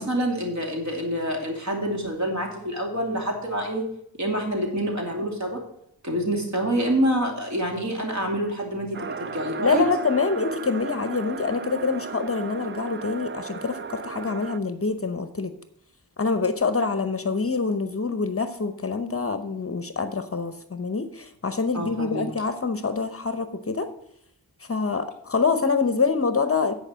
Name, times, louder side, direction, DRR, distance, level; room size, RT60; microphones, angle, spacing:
voice 1, 0.0-3.9 4.2-5.6 6.0-9.8 21.7-22.3, right 1 dB, 45° right, 1 dB, 2.7 m, -27 dB
sound 1, 8.9-14.6, right 5 dB, 30° right, 0.5 m, -35 dB
voice 2, 9.6-15.5 16.2-23.9 24.7-26.7, left 4 dB, 35° left, 10 dB, 0.8 m, -26 dB
9.7 x 5.1 x 7.4 m, 0.75 s
wide cardioid pair, 65°, 38 cm